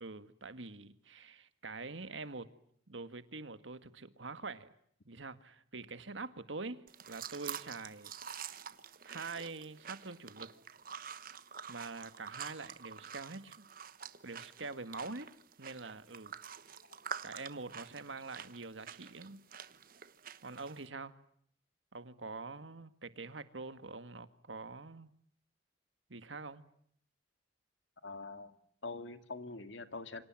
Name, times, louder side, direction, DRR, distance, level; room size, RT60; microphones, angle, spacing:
voice 1, 0.0-2.5 2.9-4.7 5.1-8.1 9.0-10.5 11.7-13.7 14.2-15.3 15.6-16.4 17.2-19.4 20.4-21.1 21.9-25.1 26.1-26.6, right 3 dB, 85° right, 1.8 m, -45 dB
sound 1, 6.9-20.9, right 7 dB, 50° right, 1.1 m, -48 dB
voice 2, 28.0-28.5 28.8-30.2, left 3 dB, 85° left, 2.1 m, -44 dB
28.5 x 25.5 x 7.6 m
head